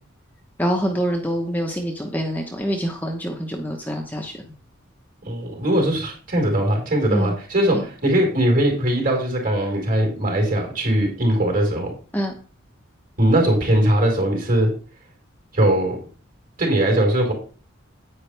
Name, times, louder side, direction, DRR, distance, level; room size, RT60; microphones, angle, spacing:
voice 1, 0.6-4.5 7.1-7.3 7.7-7.8 12.1-12.3, equal, 10° left, 1 dB, 1.0 m, -25 dB
voice 2, 5.2-11.9 13.2-14.7 15.5-16.0 16.6-17.3, right 1 dB, 40° right, 1 dB, 4.4 m, -20 dB
9.6 x 9.6 x 3.4 m, 0.40 s
head